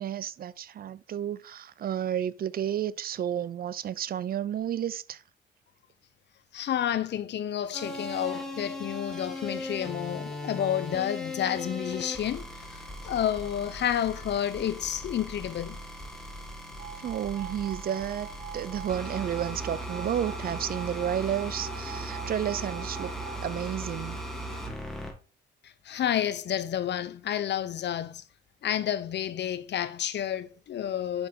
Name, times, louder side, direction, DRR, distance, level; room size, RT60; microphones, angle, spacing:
voice 1, 0.0-5.2 17.0-18.3 18.5-23.1 23.4-24.2, right 10 dB, 50° right, 0.4 m, -31 dB
voice 2, 6.5-15.8 25.6-28.2 28.6-31.3, left 10 dB, 60° left, 0.8 m, -30 dB
sound 1, 7.7-25.1, equal, ahead, 1.9 m, -38 dB
sound 2, 16.8-23.4, right 11 dB, 65° right, 1.2 m, -44 dB
6.5 x 5.6 x 4.0 m
cardioid pair, 90°, 20 cm